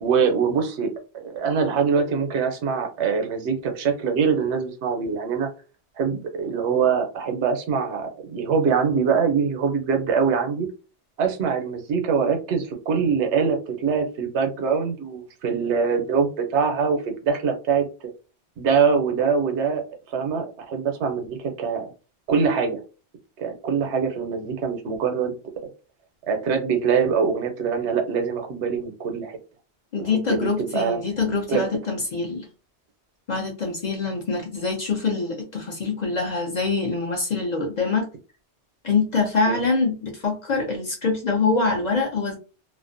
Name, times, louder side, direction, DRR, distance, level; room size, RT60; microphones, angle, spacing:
voice 1, 0.0-5.5 6.0-10.7 11.2-17.9 18.6-21.9 22.3-22.8 23.4-25.3 26.3-29.4 30.0-31.0 31.5-31.6 39.5-39.6, right 6 dB, 80° right, 4 dB, 0.9 m, -23 dB
voice 2, 29.9-32.5 33.3-38.1 38.8-42.3, left 4 dB, 50° left, 1 dB, 0.6 m, -24 dB
2.4 x 2.1 x 2.5 m, 0.34 s
omnidirectional pair, 1.1 m